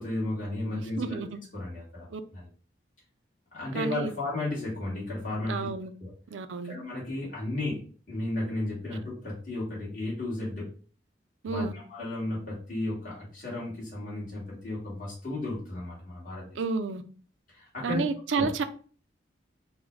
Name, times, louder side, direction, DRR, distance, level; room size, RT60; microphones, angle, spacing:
voice 1, 0.0-1.3 1.5-2.1 2.3-2.5 3.5-5.7 6.0-6.1 6.6-7.8 8.1-10.7 11.4-16.6 17.5-18.0 18.3-18.4, left 2 dB, 45° left, 1.7 m, -34 dB
voice 2, 0.7-1.4 2.1-2.2 3.7-4.1 5.5-5.9 6.3-6.8 11.4-11.7 16.6-17.0 17.8-18.6, right 4 dB, 85° right, 0.5 m, -31 dB
3.9 x 2.1 x 4.4 m
head